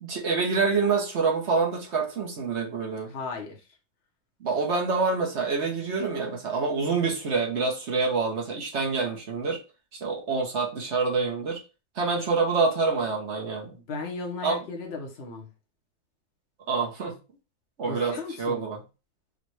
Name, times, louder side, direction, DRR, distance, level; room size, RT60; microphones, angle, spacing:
voice 1, 0.0-3.2 4.4-9.6 10.0-11.6 11.9-13.8 14.4-14.6 16.7-17.2 17.8-18.8, right 4 dB, 45° right, 1.1 m, -26 dB
voice 2, 3.1-3.6 13.7-15.5 17.9-18.6, left 3 dB, 45° left, 1.0 m, -35 dB
5.3 x 2.4 x 3.2 m
omnidirectional pair, 2.0 m